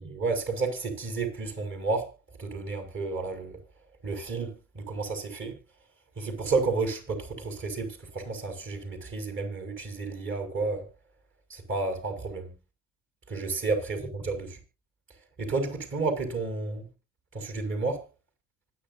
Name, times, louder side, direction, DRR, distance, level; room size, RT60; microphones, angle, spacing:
voice 1, 0.0-2.1 2.4-3.6 4.0-5.6 6.2-10.9 11.5-12.5 13.3-14.6 15.4-16.9 17.3-18.0, right 3 dB, 35° right, 6.2 m, -31 dB
25.0 x 9.7 x 2.8 m
hypercardioid pair, 70°, 35 cm